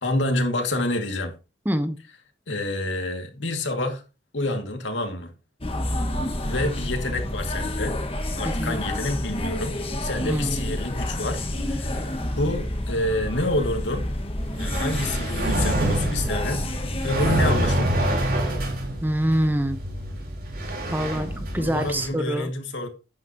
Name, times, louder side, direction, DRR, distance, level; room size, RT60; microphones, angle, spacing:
voice 1, 0.0-1.3 2.5-4.0 4.3-5.3 6.4-8.0 8.4-12.1 12.3-14.1 14.6-18.3 21.6-22.9, left 1 dB, 85° left, 2.3 m, -28 dB
voice 2, 1.7-2.0 8.4-8.8 10.2-10.8 19.0-19.8 20.9-22.5, right 1 dB, 10° right, 0.9 m, -25 dB
sound 1, 5.6-17.5, left 1 dB, 30° left, 1.6 m, -29 dB
sound 2, 14.4-22.1, right 1 dB, 55° right, 3.9 m, -27 dB
11.5 x 9.6 x 2.9 m
head